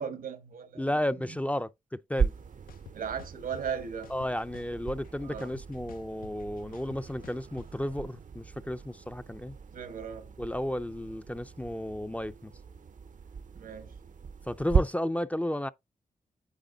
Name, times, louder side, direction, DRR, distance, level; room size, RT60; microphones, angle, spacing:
voice 1, 0.0-0.9 1.3-1.4 2.9-4.1 5.2-5.5 9.7-10.3 13.5-13.9, right 7 dB, 85° right, 1.3 m, -37 dB
voice 2, 0.8-1.7 2.1-2.3 4.1-9.6 10.4-12.5 14.5-15.7, left 1 dB, 10° left, 0.4 m, -33 dB
sound 1, 2.1-14.8, right 6 dB, 65° right, 0.6 m, -37 dB
sound 2, 2.2-2.3 2.7-3.6 4.0-5.1 5.4-7.7, left 11 dB, 85° left, 0.5 m, -50 dB
9.1 x 3.7 x 3.9 m
cardioid pair, 55°, 14 cm